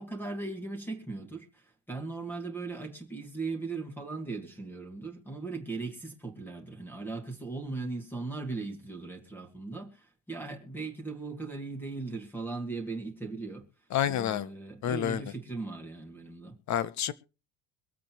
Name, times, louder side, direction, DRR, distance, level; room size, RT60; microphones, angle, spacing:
voice 1, 0.0-13.7 14.1-16.6, right 3 dB, 5° left, 2.2 m, -38 dB
voice 2, 13.9-14.5 14.8-15.3 16.7-17.1, left 10 dB, 35° left, 0.7 m, -29 dB
23.5 x 8.3 x 3.0 m
cardioid pair, 175°, 48 cm